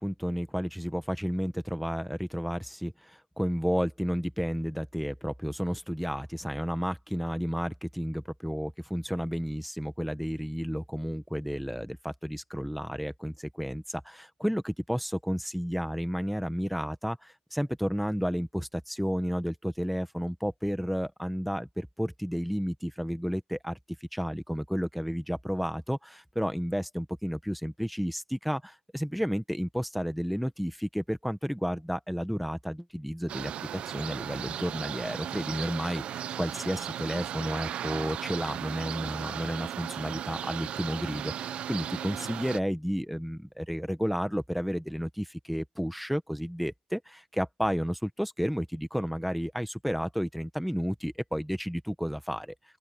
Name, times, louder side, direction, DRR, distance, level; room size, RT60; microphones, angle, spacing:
voice 1, 0.0-23.8 24.1-52.5, equal, ahead, 1.6 m, -32 dB
sound 1, 33.3-42.6, right 10 dB, 60° right, 0.7 m, -36 dB
open air
cardioid pair, 95°, 2 cm